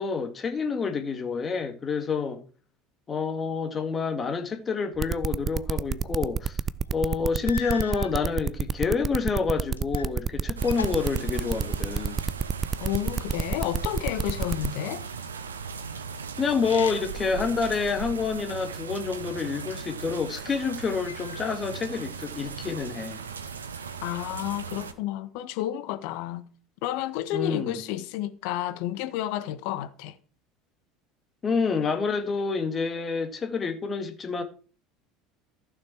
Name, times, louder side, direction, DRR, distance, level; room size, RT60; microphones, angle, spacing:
voice 1, 0.0-2.4 3.1-6.6 6.9-12.2 16.4-23.2 27.3-27.8 31.4-34.4, left 5 dB, 25° left, 1.9 m, -28 dB
sound 1, 5.0-14.7, right 7 dB, 30° right, 0.5 m, -28 dB
sound 2, 6.9-7.0 7.4-8.2 9.0-10.2 10.5-12.0 16.5-17.3 17.8-18.8 19.6-20.4 21.1-21.8, left 7 dB, 75° left, 0.7 m, -41 dB
sound 3, 10.6-24.9, right 6 dB, 75° right, 1.0 m, -38 dB
voice 2, 12.8-15.0 24.0-26.4 26.8-30.1, left 13 dB, 55° left, 1.0 m, -31 dB
14.5 x 6.5 x 4.5 m
figure-of-eight pair, 70°, 0 cm